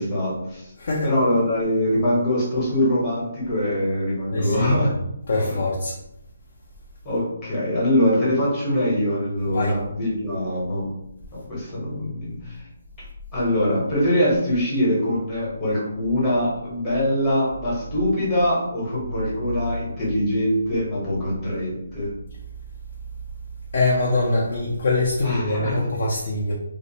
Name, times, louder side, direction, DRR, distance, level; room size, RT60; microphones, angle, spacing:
voice 1, 0.0-0.7 1.0-4.9 5.3-5.6 7.0-10.9 11.3-12.6 13.3-22.1 25.2-25.8, left 1 dB, 15° left, -8 dB, 0.8 m, -23 dB
voice 2, 0.8-1.1 4.3-4.8 5.3-5.9 9.5-9.7 23.7-26.5, left 2 dB, 50° left, -4 dB, 0.5 m, -23 dB
2.4 x 2.0 x 2.7 m, 0.80 s
hypercardioid pair, 170°, 0 cm